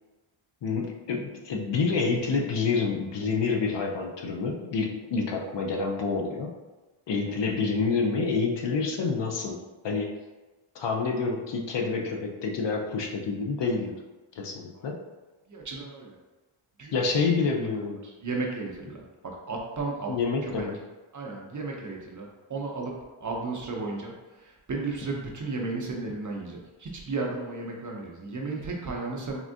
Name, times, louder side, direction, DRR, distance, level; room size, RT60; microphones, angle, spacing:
voice 1, 0.6-6.6 7.1-9.6 9.8-10.1 10.7-13.9 14.4-15.0 16.9-18.0 20.1-20.8, left 4 dB, 60° left, 2 dB, 0.5 m, -28 dB
voice 2, 15.5-16.2 16.8-17.1 18.0-20.7 21.1-29.4, right 3 dB, 40° right, -1 dB, 0.5 m, -34 dB
3.6 x 2.4 x 2.5 m, 1.2 s
wide cardioid pair, 120°, 50 cm